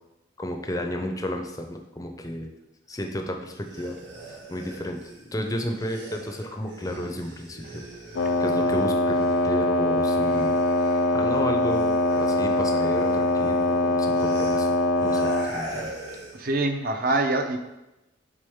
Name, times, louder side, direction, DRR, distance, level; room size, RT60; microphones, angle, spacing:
voice 1, 0.4-2.5 2.9-4.0 4.5-5.0 5.3-7.8 8.4-10.6 11.1-15.9, left 1 dB, 15° left, 4 dB, 0.5 m, -32 dB
sound 1, 3.5-9.7 10.0-16.5, right 1 dB, 65° right, 2.1 m, -42 dB
Wind instrument woodwind instrument, 8.2-15.6, left 1 dB, 70° left, 0.4 m, -23 dB
voice 2, 16.3-17.6, right 2 dB, 45° right, 5 dB, 0.7 m, -24 dB
8.6 x 3.8 x 3.6 m, 0.96 s
head